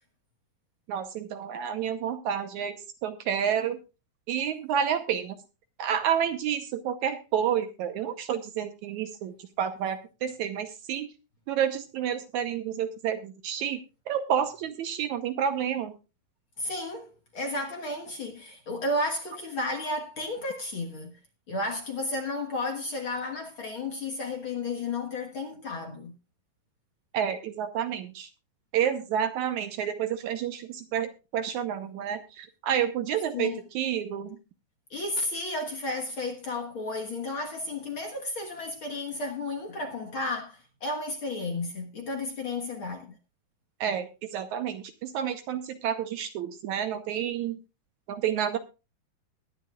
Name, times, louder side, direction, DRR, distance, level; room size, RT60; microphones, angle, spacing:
voice 1, 0.9-3.8 4.3-5.4 5.8-11.1 11.5-13.8 14.1-15.9 27.1-28.3 28.7-34.4 43.8-47.6 48.1-48.6, right 9 dB, 70° right, 2.0 m, -29 dB
voice 2, 16.6-21.2 21.5-26.1 33.3-33.6 34.9-43.2, left 2 dB, 50° left, 1.7 m, -33 dB
21.0 x 10.0 x 2.4 m
omnidirectional pair, 3.9 m